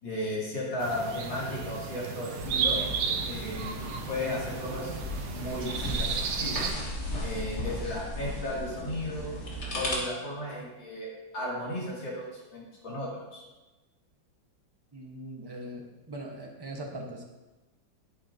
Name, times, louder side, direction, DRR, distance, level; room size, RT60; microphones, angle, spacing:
voice 1, 0.0-2.9 3.2-4.9 5.3-6.6 7.2-9.4 9.7-13.4, left 1 dB, 75° left, -6 dB, 3.4 m, -35 dB
sound 1, 0.8-6.7, right 6 dB, 65° right, 1.3 m, -33 dB
sound 2, 2.4-9.9, left 1 dB, 40° left, 1.8 m, -36 dB
voice 2, 14.9-17.2, right 1 dB, 20° right, 0 dB, 0.8 m, -41 dB
10.0 x 8.5 x 2.8 m, 1.1 s
omnidirectional pair, 2.1 m